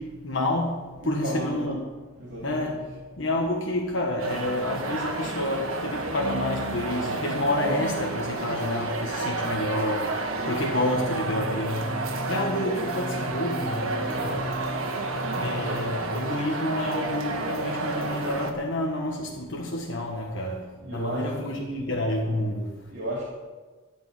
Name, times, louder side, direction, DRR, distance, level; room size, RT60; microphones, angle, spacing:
voice 1, 0.0-1.8 2.4-14.6 15.2-22.9, left 1 dB, 65° left, 1.4 m, -29 dB
voice 2, 1.0-1.7 2.2-2.8 7.5-7.8 14.2-14.5 20.8-22.0 22.9-23.2, right 1 dB, 55° right, 3.1 m, -34 dB
sound 1, 4.2-18.5, right 2 dB, 80° right, 1.5 m, -30 dB
sound 2, 10.6-16.3, left 1 dB, 20° left, 0.9 m, -37 dB
14.0 x 5.2 x 8.5 m
head